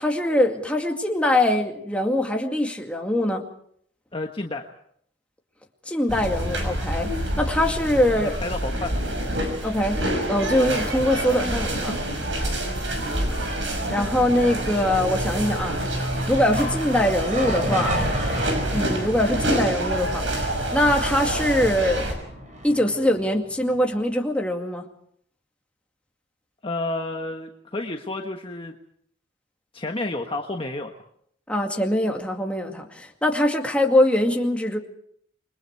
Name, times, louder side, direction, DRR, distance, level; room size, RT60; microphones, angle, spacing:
voice 1, 0.0-3.4 5.9-7.1 7.4-8.3 9.6-12.0 13.9-15.7 16.3-18.3 18.7-22.1 22.6-24.9 31.5-34.8, left 1 dB, 5° left, 1 dB, 2.3 m, -23 dB
voice 2, 4.1-4.7 8.1-8.9 26.6-28.7 29.7-30.9, left 2 dB, 30° left, 3 dB, 1.4 m, -30 dB
sound 1, 6.1-22.1, right 1 dB, 85° right, 5.7 m, -27 dB
sound 2, 15.6-23.8, equal, 40° right, 7.0 m, -33 dB
28.0 x 22.5 x 4.7 m, 0.66 s
head